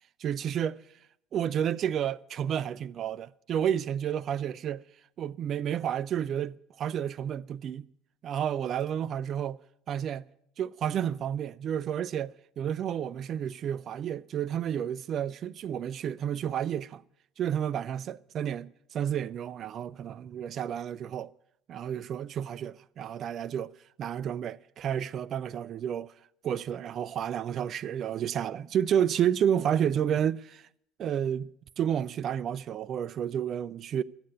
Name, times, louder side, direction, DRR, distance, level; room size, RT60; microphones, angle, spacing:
voice 1, 0.2-0.8 1.3-4.8 5.2-7.9 8.2-9.6 9.9-10.2 10.6-17.0 17.4-21.3 21.7-23.7 24.0-26.1 26.4-30.6 31.0-31.5 31.8-34.0, right 9 dB, 45° right, 0.4 m, -31 dB
12.5 x 8.5 x 9.2 m
figure-of-eight pair, 60°, 0 cm